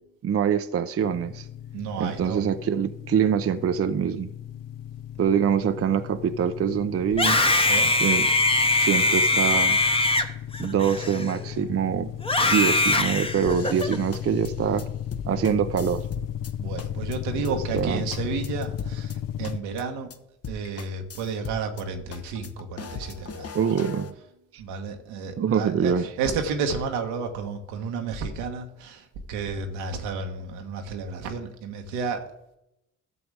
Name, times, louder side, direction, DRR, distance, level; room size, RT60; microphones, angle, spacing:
voice 1, 0.2-1.5 2.0-4.3 5.2-7.4 8.0-8.3 8.8-9.8 10.6-12.1 12.5-14.8 15.3-16.1 17.5-18.1 23.5-24.1 25.4-26.1, right 8 dB, 35° right, 10 dB, 0.6 m, -24 dB
sound 1, 1.0-19.6, left 10 dB, 50° left, 0.6 m, -35 dB
voice 2, 1.7-2.4 7.6-7.9 16.6-20.1 20.5-23.6 24.6-32.2, right 5 dB, 75° right, 4 dB, 1.2 m, -31 dB
Screaming, 7.1-11.6 12.2-14.0, left 2 dB, 15° left, 1.0 m, -22 dB
sound 2, 13.5-16.5 16.8-17.2 17.4-17.5 17.8-19.2 19.4-19.8 20.1-20.2 20.4-21.8 22.1-24.1, left 5 dB, 35° left, 1.0 m, -40 dB
13.5 x 7.0 x 3.4 m, 0.83 s
hypercardioid pair, 40°, 41 cm